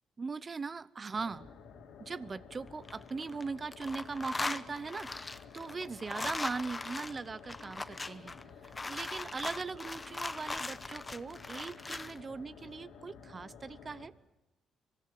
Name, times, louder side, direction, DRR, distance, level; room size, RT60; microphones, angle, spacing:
voice 1, 0.2-1.5 2.0-14.1, right 4 dB, 35° right, 17 dB, 0.8 m, -40 dB
sound 1, 1.1-14.1, left 6 dB, 80° left, 2.8 m, -52 dB
sound 2, 2.7-3.4 3.7-12.2, left 2 dB, 20° left, 0.9 m, -40 dB
25.0 x 17.0 x 9.3 m, 1.0 s
cardioid pair, 90°, 0 cm